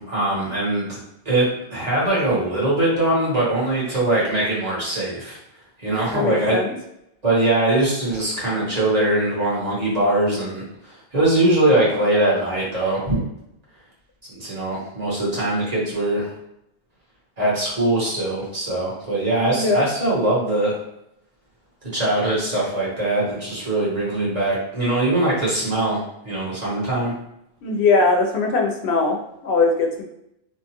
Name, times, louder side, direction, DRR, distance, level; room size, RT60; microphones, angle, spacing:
voice 1, 0.0-5.4 5.8-6.6 7.2-13.2 14.3-16.3 17.4-20.7 21.9-27.1, right 1 dB, 40° right, -6 dB, 1.2 m, -22 dB
voice 2, 6.1-6.7 19.4-19.8 27.6-30.0, left 3 dB, 85° left, 2 dB, 0.8 m, -20 dB
2.9 x 2.2 x 2.8 m, 0.79 s
omnidirectional pair, 1.1 m